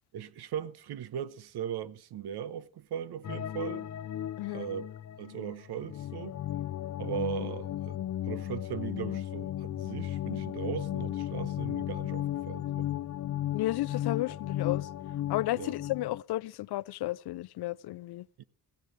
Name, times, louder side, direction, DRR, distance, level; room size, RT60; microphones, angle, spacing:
voice 1, 0.1-3.9 4.5-4.9 5.2-6.4 7.0-8.0 8.2-12.9 15.6-15.7 18.4-18.5, right 9 dB, 85° right, 1.1 m, -38 dB
sound 1, 3.2-16.2, left 12 dB, 45° left, 0.5 m, -35 dB
voice 2, 4.4-4.7 13.5-14.9 15.3-18.3, left 16 dB, 85° left, 0.6 m, -33 dB
15.5 x 14.5 x 3.2 m
cardioid pair, 105°, 38 cm